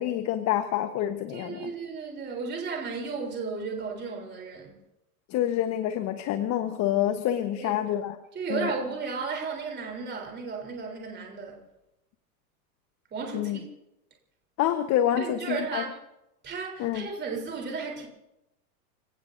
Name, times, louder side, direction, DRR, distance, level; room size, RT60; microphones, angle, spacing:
voice 1, 0.0-1.7 5.3-8.2 8.5-8.7 13.3-13.6 14.6-15.8 16.8-17.1, left 11 dB, 35° left, 1.2 m, -27 dB
voice 2, 1.3-4.8 7.5-7.8 8.3-11.6 13.1-13.7 15.2-16.0 16.4-18.1, right 4 dB, 20° right, 3.6 m, -34 dB
29.5 x 18.0 x 2.7 m
hypercardioid pair, 115°, 46 cm